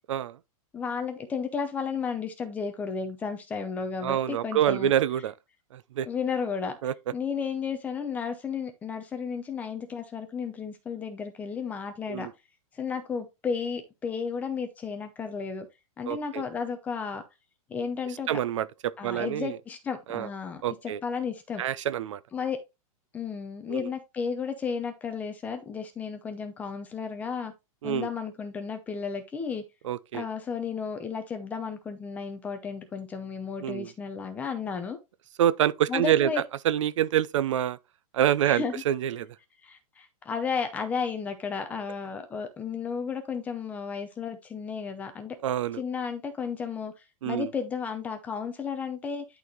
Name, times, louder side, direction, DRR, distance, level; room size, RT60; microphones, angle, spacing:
voice 1, 0.7-4.9 6.1-6.8 7.1-12.3 12.7-15.7 16.0-17.2 17.7-18.3 19.0-21.6 22.3-22.6 23.1-27.5 27.8-29.6 30.1-35.0 35.9-36.4 38.4-38.7 39.6-45.4 45.8-46.9 47.2-49.2, left 6 dB, 10° left, 0.6 m, -33 dB
voice 2, 4.0-5.3 5.7-6.1 6.8-6.9 12.1-12.3 16.1-16.4 18.3-19.6 20.1-20.3 20.6-21.0 21.6-22.2 23.7-23.9 27.8-28.1 29.8-30.2 33.6-33.9 35.4-36.3 36.6-37.8 38.1-39.3 45.4-45.8 47.2-47.5, right 11 dB, 60° right, 0.5 m, -26 dB
11.0 x 4.2 x 3.0 m
supercardioid pair, 175°, 18 cm